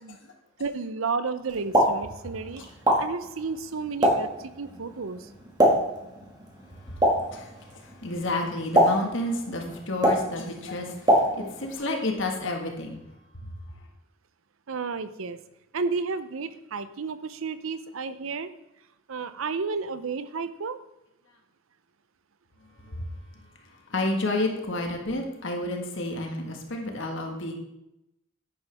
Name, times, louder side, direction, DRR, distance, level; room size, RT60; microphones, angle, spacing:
voice 1, 0.6-2.6 3.0-5.3 14.7-15.4 15.7-18.5 19.1-20.8, right 4 dB, 75° right, 13 dB, 0.6 m, -32 dB
Explosion, 1.5-11.8, equal, 20° right, 1.9 m, -26 dB
voice 2, 6.7-13.0 13.3-13.9 22.8-23.2 23.6-27.5, left 2 dB, 65° left, 2 dB, 1.7 m, -31 dB
10.0 x 9.0 x 3.5 m, 0.87 s
head